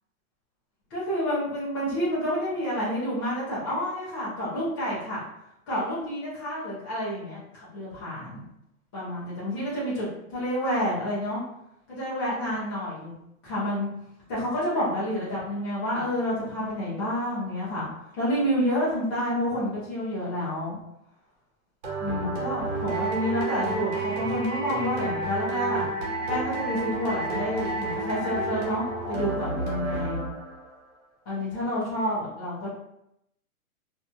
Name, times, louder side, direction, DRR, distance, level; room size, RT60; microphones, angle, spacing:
voice 1, 0.9-5.2 5.7-8.4 8.9-11.4 11.9-13.1 13.4-13.9 14.3-17.9 18.2-20.8 22.0-25.8 26.3-30.2 31.3-32.7, equal, 15° left, -9 dB, 0.7 m, -29 dB
sound 1, 21.8-30.7, right 2 dB, 50° right, 1.4 m, -30 dB
2.8 x 2.7 x 2.2 m, 0.80 s
hypercardioid pair, 175°, 44 cm